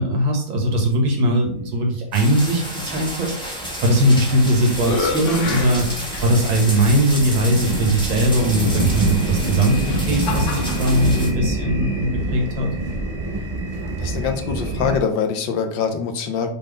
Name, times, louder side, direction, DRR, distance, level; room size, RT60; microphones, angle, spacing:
voice 1, 0.0-5.9 6.2-12.7, right 1 dB, 85° right, 1 dB, 2.4 m, -20 dB
sound 1, 2.1-11.3, equal, 5° left, 1.3 m, -32 dB
sound 2, 2.4-15.0, right 1 dB, 60° right, 0.3 m, -27 dB
sound 3, 4.0-4.4 4.8-6.7 7.4-7.5 9.3-11.0, left 4 dB, 50° left, 1.0 m, -29 dB
voice 2, 14.0-16.5, left 6 dB, 75° left, 6 dB, 1.5 m, -24 dB
5.2 x 4.0 x 5.1 m, 0.64 s
omnidirectional pair, 2.1 m